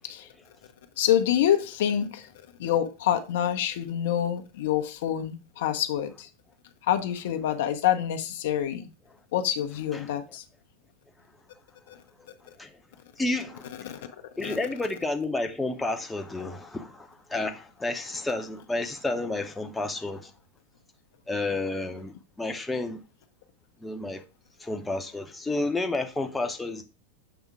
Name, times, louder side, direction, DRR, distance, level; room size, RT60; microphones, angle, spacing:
voice 1, 1.0-2.3 2.6-6.3 6.9-8.9 9.3-10.4 13.8-14.0 14.4-14.6, left 10 dB, 55° left, 0.7 m, -26 dB
voice 2, 13.2-14.0 14.4-20.3 21.3-23.0 23.8-24.2 24.6-26.8, left 2 dB, 10° left, 0.8 m, -31 dB
7.0 x 3.6 x 4.8 m
figure-of-eight pair, 90°, 0 cm